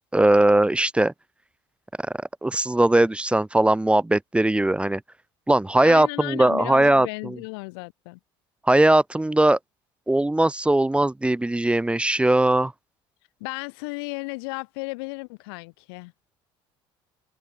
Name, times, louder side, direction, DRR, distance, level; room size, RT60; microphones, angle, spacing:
voice 1, 0.1-1.1 2.4-5.0 5.5-7.4 8.7-9.6 10.1-12.7, right 1 dB, 10° right, 1.0 m, -19 dB
voice 2, 5.8-8.2 13.4-16.1, left 29 dB, 80° left, 1.2 m, -34 dB
hypercardioid pair, 75°, 12 cm